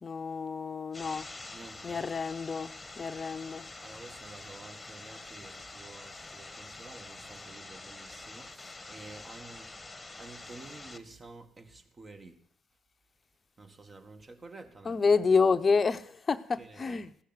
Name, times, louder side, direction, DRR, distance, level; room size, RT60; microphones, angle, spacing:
voice 1, 0.0-1.3 1.8-3.6 14.8-17.1, left 5 dB, 35° left, 0.8 m, -28 dB
sound 1, 0.9-11.0, left 2 dB, 20° left, 1.3 m, -46 dB
voice 2, 1.5-2.1 3.8-9.7 10.2-12.4 13.6-15.1 16.6-17.1, right 3 dB, 30° right, 2.0 m, -50 dB
15.5 x 6.5 x 9.8 m
hypercardioid pair, 60°, 0 cm